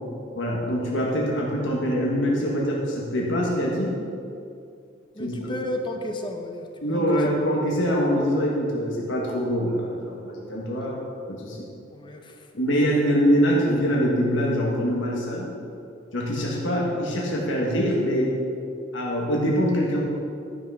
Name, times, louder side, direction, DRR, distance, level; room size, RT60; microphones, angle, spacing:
voice 1, 0.3-4.0 5.2-5.5 6.8-11.0 11.3-11.7 12.5-15.5 16.1-18.4 18.9-20.0, equal, 70° left, -3 dB, 1.6 m, -24 dB
voice 2, 5.2-7.1 11.9-12.4, left 1 dB, 25° left, 4 dB, 0.7 m, -33 dB
12.5 x 5.8 x 5.6 m, 2.5 s
head